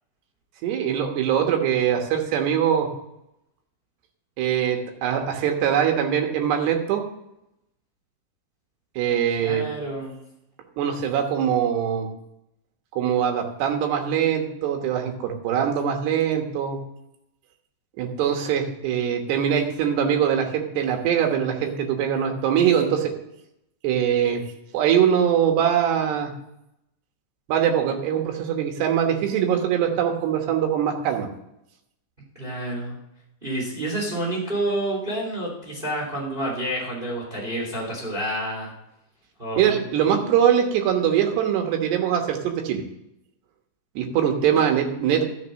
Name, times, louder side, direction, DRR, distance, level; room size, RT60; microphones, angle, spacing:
voice 1, 0.6-2.9 4.4-7.0 9.0-9.7 10.8-12.1 12.9-16.8 18.0-23.1 23.8-24.4 24.7-26.3 27.5-31.3 39.6-42.8 44.0-45.2, right 9 dB, 90° right, 3 dB, 3.4 m, -22 dB
voice 2, 9.4-10.1 32.3-33.0 33.4-38.7 39.4-39.8 44.5-44.6, right 1 dB, 15° right, -3 dB, 2.9 m, -29 dB
12.5 x 6.7 x 6.3 m, 0.83 s
omnidirectional pair, 4.7 m